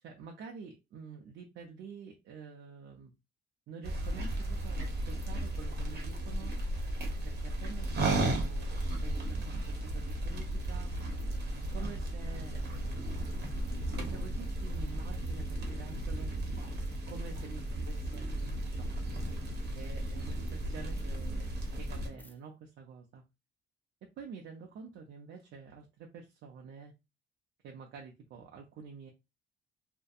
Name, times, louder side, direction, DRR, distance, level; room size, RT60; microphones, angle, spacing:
voice 1, 0.0-3.1 3.7-6.5 7.2-10.9 11.5-13.2 13.8-16.3 17.1-18.5 18.8-18.9 19.7-21.5 21.8-23.2 24.0-26.9 27.6-29.1, right 5 dB, 70° right, 1 dB, 0.5 m, -48 dB
sound 1, 3.8-22.1, right 1 dB, 55° right, 0.9 m, -35 dB
sound 2, 12.3-22.3, equal, 10° left, 0.4 m, -48 dB
2.7 x 2.1 x 2.4 m, 0.24 s
cardioid pair, 90°, 20 cm